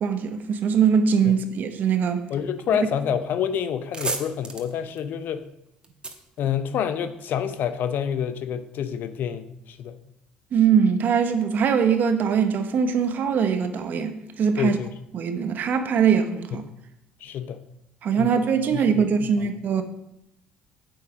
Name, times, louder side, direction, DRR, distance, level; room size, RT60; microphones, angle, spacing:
voice 1, 0.0-2.2 10.5-14.8 15.1-16.6 18.0-19.8, right 7 dB, 60° right, 1.1 m, -22 dB
voice 2, 2.3-5.5 6.4-10.0 14.6-14.9 16.5-16.7 17.2-17.6 18.2-18.3 18.7-19.1 19.4-19.5, left 8 dB, 65° left, 0.8 m, -28 dB
sound 1, 3.8-7.3, right 3 dB, 25° right, 1.5 m, -35 dB
7.9 x 7.8 x 5.0 m
supercardioid pair, 75°, 4 cm